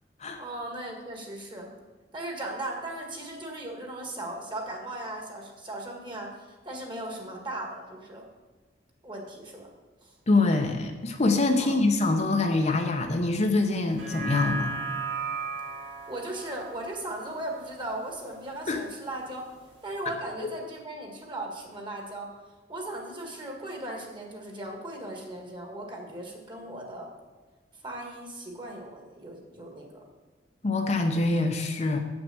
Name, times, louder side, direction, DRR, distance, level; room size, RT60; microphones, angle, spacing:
voice 1, 0.4-1.7 2.1-8.3 9.0-9.7 10.0-10.1 11.6-11.8 16.1-19.5 19.8-22.3 22.7-27.1 27.8-30.0, right 1 dB, 25° right, 1 dB, 1.7 m, -37 dB
voice 2, 10.3-14.7 18.7-18.8 30.6-32.0, left 2 dB, 40° left, 4 dB, 0.7 m, -24 dB
sound 1, 13.9-18.4 18.9-19.0, right 4 dB, 85° right, 2.3 m, -36 dB
7.3 x 6.1 x 7.8 m, 1.3 s
head